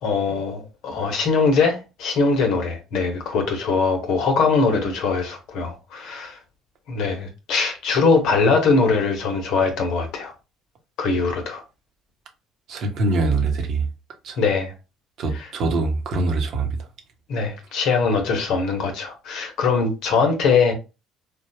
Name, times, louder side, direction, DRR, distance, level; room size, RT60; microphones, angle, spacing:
voice 1, 0.0-6.4 6.9-10.3 11.0-11.6 14.4-14.7 15.3-15.5 17.3-20.7, left 4 dB, 70° left, 1.0 m, -21 dB
voice 2, 12.7-13.8 14.2-14.4 15.2-16.7, right 3 dB, 65° right, 0.8 m, -23 dB
3.4 x 2.4 x 2.7 m
hypercardioid pair, 60°, 0 cm